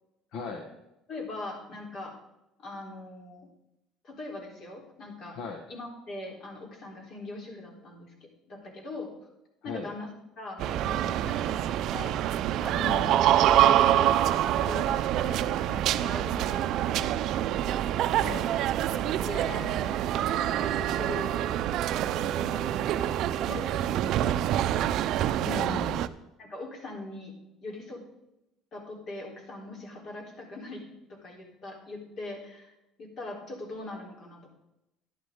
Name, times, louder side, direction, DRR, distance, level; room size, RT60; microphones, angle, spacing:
voice 1, 0.3-0.7 5.3-5.6 9.6-9.9 12.7-13.1 18.2-18.5 25.4-26.0, left 4 dB, 65° left, 3 dB, 1.6 m, -36 dB
voice 2, 1.1-2.2 2.6-3.5 4.0-5.4 5.7-9.1 9.6-10.1 10.4-12.2 12.6-12.8 13.1-17.7 18.9-20.2 20.4-21.3 21.9-23.0 23.3-24.8 26.4-27.3 27.6-28.0 28.7-34.5, left 2 dB, 50° left, 0 dB, 3.7 m, -41 dB
sound 1, 10.6-26.1, right 12 dB, 65° right, 0.5 m, -26 dB
12.0 x 11.0 x 3.7 m, 0.89 s
supercardioid pair, 105°, 0 cm